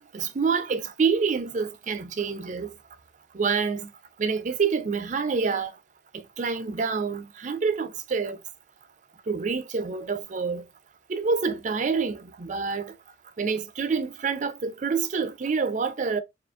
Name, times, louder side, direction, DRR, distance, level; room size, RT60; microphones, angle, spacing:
voice 1, 0.1-2.7 3.3-3.9 4.2-5.7 6.1-8.4 9.3-10.7 11.1-12.9 13.4-16.2, right 5 dB, 40° right, 0.4 m, -27 dB
2.8 x 2.4 x 2.4 m
head